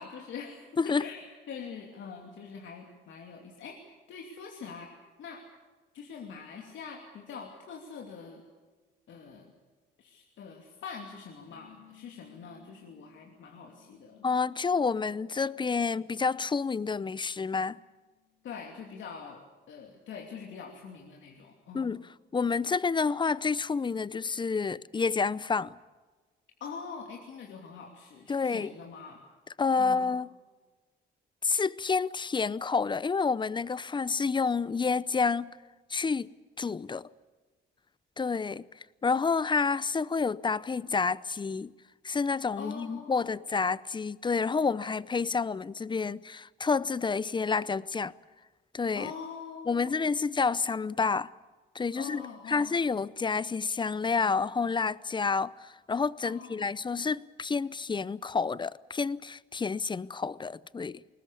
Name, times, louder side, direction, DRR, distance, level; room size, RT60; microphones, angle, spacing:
voice 1, 0.0-4.9 5.2-5.4 5.9-8.4 9.1-9.5 10.0-14.2 18.4-22.0 26.6-29.2 29.8-30.1 42.6-43.2 48.9-50.0 51.9-52.8 56.2-56.7, left 6 dB, 75° left, 2.7 m, -44 dB
sound 1, 11.4-17.4 17.9-19.2, left 13 dB, 60° right, 4.8 m, -62 dB
voice 2, 14.2-17.8 21.7-22.0 22.3-25.8 28.3-28.7 29.6-30.3 31.4-35.6 35.9-36.3 36.6-37.1 38.2-38.7 39.0-41.7 42.0-48.1 48.7-49.1 49.7-51.3 51.7-61.0, left 4 dB, 25° left, 0.6 m, -29 dB
21.5 x 19.5 x 8.5 m
cardioid pair, 90°, 20 cm